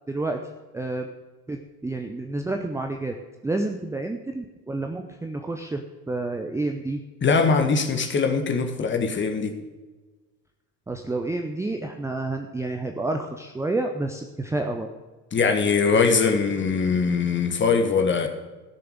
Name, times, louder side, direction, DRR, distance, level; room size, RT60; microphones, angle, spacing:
voice 1, 0.1-0.4 0.7-1.1 1.5-3.1 3.4-7.0 10.9-14.9, right 2 dB, 5° right, 4 dB, 0.7 m, -29 dB
voice 2, 7.2-9.5 15.3-18.3, left 5 dB, 25° left, 6 dB, 1.7 m, -22 dB
16.0 x 6.9 x 6.7 m, 1.2 s
figure-of-eight pair, 70°, 49 cm